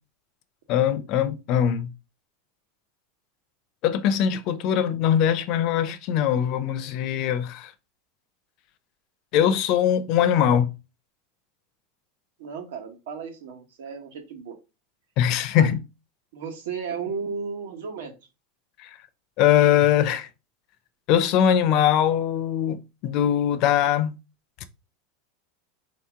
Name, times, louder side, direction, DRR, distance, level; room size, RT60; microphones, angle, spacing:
voice 1, 0.7-1.9 3.8-7.7 9.3-10.7 15.2-15.8 18.8-19.0 19.4-20.3 21.1-24.1, left 9 dB, 35° left, 0.4 m, -21 dB
voice 2, 12.4-14.6 15.6-15.7 16.3-18.1, right 5 dB, 80° right, 1.3 m, -34 dB
4.1 x 2.8 x 3.5 m
supercardioid pair, 175°, 0 cm